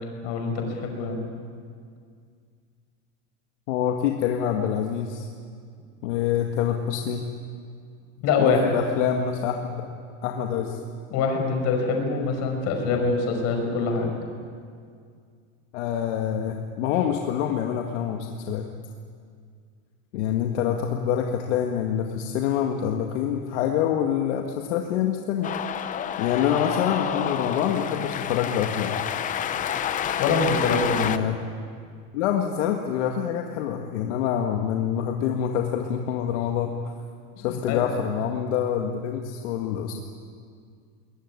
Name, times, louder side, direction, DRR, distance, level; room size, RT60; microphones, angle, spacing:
voice 1, 0.2-1.2 8.2-8.8 10.5-10.6 11.1-14.1 30.2-31.1 37.4-37.8, left 4 dB, 45° left, 3 dB, 5.5 m, -24 dB
voice 2, 3.7-5.3 6.0-7.2 8.4-9.9 10.2-10.8 15.7-18.7 20.1-25.5 26.2-28.9 31.0-31.3 32.1-36.7 37.4-39.9, left 9 dB, 65° left, 3 dB, 1.9 m, -26 dB
Cheering, 25.4-31.2, left 9 dB, 20° left, 0.7 m, -29 dB
21.5 x 20.5 x 9.7 m, 2.2 s
supercardioid pair, 150°, 39 cm